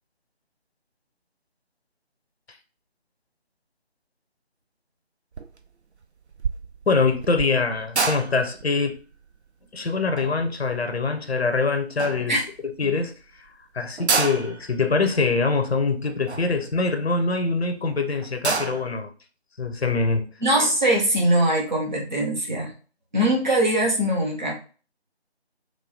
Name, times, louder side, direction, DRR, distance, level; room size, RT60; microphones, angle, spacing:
sound 1, 5.3-5.7 6.0-11.5 12.0-12.7 13.2-13.3 13.5-13.6 13.9-17.5 17.9-18.0 18.2-19.0, right 4 dB, 85° right, 0.5 m, -30 dB
voice 1, 6.9-9.0 9.7-13.1 13.7-19.1 19.6-20.3, left 4 dB, 70° left, 0.6 m, -24 dB
voice 2, 20.4-22.7 23.1-24.5, right 1 dB, 45° right, 0.8 m, -22 dB
3.0 x 2.3 x 2.7 m
figure-of-eight pair, 165°, 33 cm